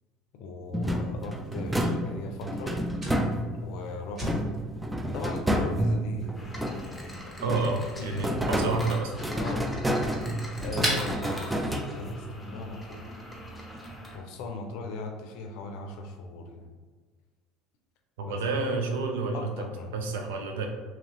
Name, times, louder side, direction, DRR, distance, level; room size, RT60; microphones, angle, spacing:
voice 1, 0.3-2.8 3.5-4.3 5.1-6.5 6.8-7.4 7.8-8.5 9.4-9.7 10.6-13.2 14.1-16.7 18.2-18.4 19.3-20.2, left 3 dB, 70° left, 4 dB, 0.5 m, -39 dB
sound 1, 0.7-3.8 4.2-7.0 7.4-12.3, equal, 10° right, 0.4 m, -30 dB
Fire, 0.8-12.3, equal, 30° right, 1.4 m, -40 dB
sound 2, 6.3-14.2, equal, 10° left, 0.8 m, -42 dB
voice 2, 7.4-9.1 18.2-19.5 19.9-20.7, right 3 dB, 85° right, 3 dB, 0.5 m, -29 dB
2.9 x 2.8 x 2.9 m, 1.4 s
supercardioid pair, 85°, 0 cm